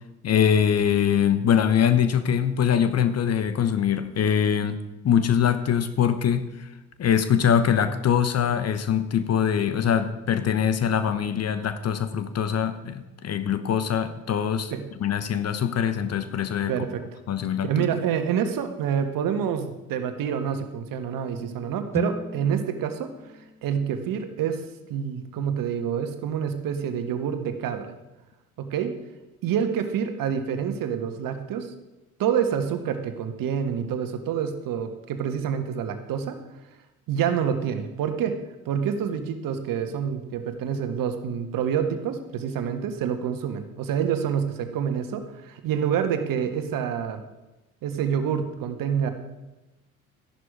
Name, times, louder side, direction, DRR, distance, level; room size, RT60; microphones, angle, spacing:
voice 1, 0.2-4.8 5.0-6.7 7.0-14.7 15.0-16.7 17.3-17.9, left 8 dB, 35° left, 11 dB, 1.1 m, -23 dB
voice 2, 16.7-17.0 17.6-23.1 23.6-24.6 24.9-27.9 28.6-28.9 29.4-31.7 32.2-36.4 37.1-38.4 38.6-47.2 47.8-49.1, right 8 dB, 50° right, 7 dB, 1.6 m, -27 dB
sound 1, 21.9-26.0, left 2 dB, 5° left, 0.4 m, -38 dB
13.5 x 11.0 x 4.9 m, 1.0 s
figure-of-eight pair, 60°, 42 cm